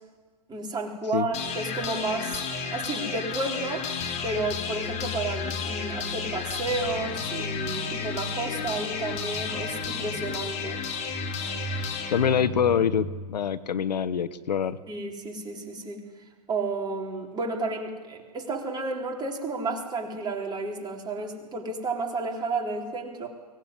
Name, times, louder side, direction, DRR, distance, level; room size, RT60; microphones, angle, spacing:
voice 1, 0.5-2.4 2.7-3.9 4.2-10.8 14.9-16.0 16.5-23.3, right 3 dB, 20° right, 1 dB, 3.8 m, -32 dB
sound 1, 1.3-13.3, left 5 dB, 30° left, 3.2 m, -32 dB
voice 2, 12.1-14.8, left 8 dB, 75° left, 15 dB, 1.0 m, -25 dB
23.5 x 17.5 x 9.8 m, 1.5 s
hypercardioid pair, 115°, 21 cm